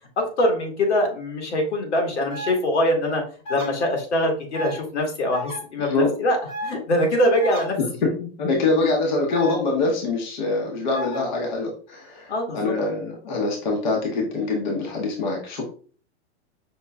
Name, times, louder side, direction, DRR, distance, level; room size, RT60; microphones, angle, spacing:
voice 1, 0.4-3.2 3.5-6.4 6.6-7.8 8.8-8.9 12.3-12.7, left 1 dB, 80° left, 2 dB, 1.6 m, -23 dB
sound 1, 2.3-2.5 3.4-3.7 4.5-4.8 5.3-5.6 6.5-6.7 7.4-7.6 9.3-9.5 10.9-11.2, left 1 dB, 10° left, 1.0 m, -32 dB
voice 2, 5.8-6.1 8.0-15.6, left 3 dB, 45° left, 0 dB, 0.9 m, -24 dB
5.4 x 2.9 x 2.3 m, 0.41 s
supercardioid pair, 175°, 34 cm